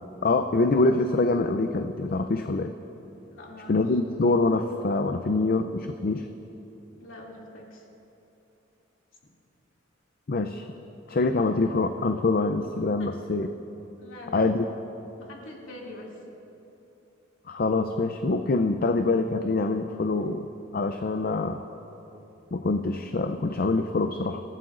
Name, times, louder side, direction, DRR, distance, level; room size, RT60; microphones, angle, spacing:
voice 1, 0.2-2.7 3.7-6.3 10.3-10.6 11.1-13.5 14.3-14.6 17.5-20.5 20.7-21.6 22.5-24.4, left 3 dB, 50° left, 7 dB, 0.5 m, -25 dB
voice 2, 3.3-3.8 7.0-7.9 13.0-13.1 14.0-14.4 15.2-16.2, left 2 dB, 80° left, -2 dB, 2.6 m, -43 dB
26.0 x 15.0 x 2.5 m, 3.0 s
head